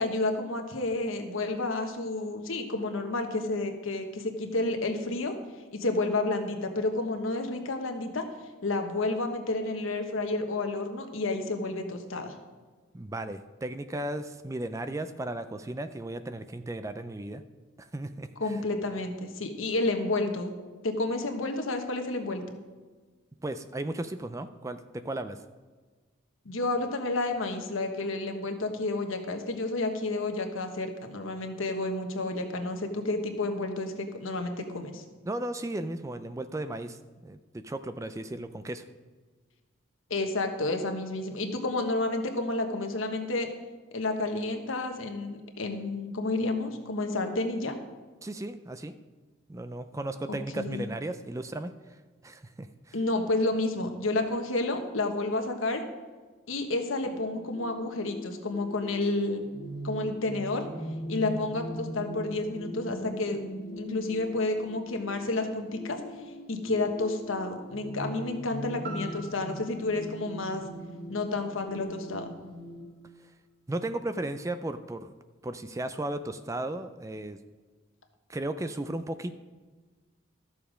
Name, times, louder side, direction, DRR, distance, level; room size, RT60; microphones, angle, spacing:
voice 1, 0.0-5.3 5.7-8.2 8.6-12.3 18.4-20.5 20.8-22.4 26.4-35.0 40.1-43.5 43.9-47.8 50.3-50.9 52.9-55.8 56.5-59.5 59.8-60.6 61.1-63.4 63.8-66.0 66.5-70.6 71.1-72.3, left 2 dB, 80° left, 5 dB, 1.3 m, -30 dB
voice 2, 12.9-17.4 17.8-18.6 23.4-25.4 35.3-38.8 48.2-48.9 49.5-51.7 52.2-53.0 73.7-75.1 75.4-77.4 78.3-79.4, right 1 dB, 15° right, 10 dB, 0.4 m, -35 dB
sound 1, 57.0-72.8, equal, 40° left, 1.9 m, -41 dB
sound 2, 68.8-72.9 73.4-73.5, right 2 dB, 50° right, 1.7 m, -48 dB
13.0 x 7.0 x 5.0 m, 1.4 s
head